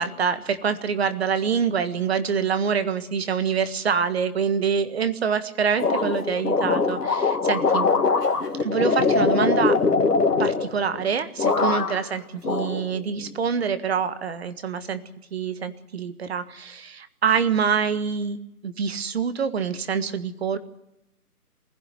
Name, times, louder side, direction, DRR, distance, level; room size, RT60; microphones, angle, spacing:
voice 1, 0.0-7.9 8.6-9.8 10.4-15.0 15.3-18.4 18.6-20.6, right 6 dB, 40° right, 12 dB, 1.6 m, -25 dB
sound 1, 5.8-11.1 11.4-12.1 12.4-13.3, left 4 dB, 80° left, 2.6 m, -22 dB
22.5 x 16.0 x 9.4 m, 0.86 s
hypercardioid pair, 160°, 47 cm